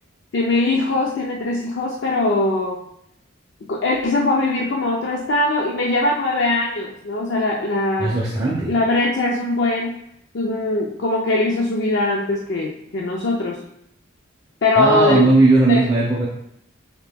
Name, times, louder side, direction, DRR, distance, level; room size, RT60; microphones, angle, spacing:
voice 1, 0.3-2.9 3.7-8.2 8.7-10.0 10.3-13.6 14.6-15.3 15.7-15.9, left 2 dB, 60° left, -2 dB, 0.4 m, -21 dB
voice 2, 8.0-8.7 14.8-16.3, right 2 dB, 20° right, -5 dB, 0.6 m, -17 dB
6.6 x 2.9 x 2.2 m, 0.75 s
head